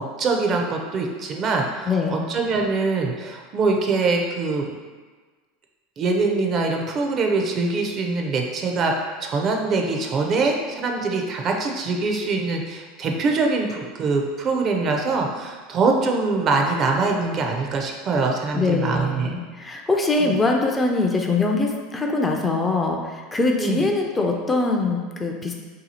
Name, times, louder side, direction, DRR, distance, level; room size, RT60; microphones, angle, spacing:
voice 1, 0.2-4.7 6.0-8.9 9.2-19.3 20.2-20.3 23.5-23.8, right 3 dB, 40° right, 2 dB, 0.5 m, -23 dB
voice 2, 1.9-2.2 18.5-25.5, left 3 dB, 15° left, 1 dB, 0.4 m, -23 dB
2.8 x 2.3 x 4.1 m, 1.4 s
supercardioid pair, 115°, 0 cm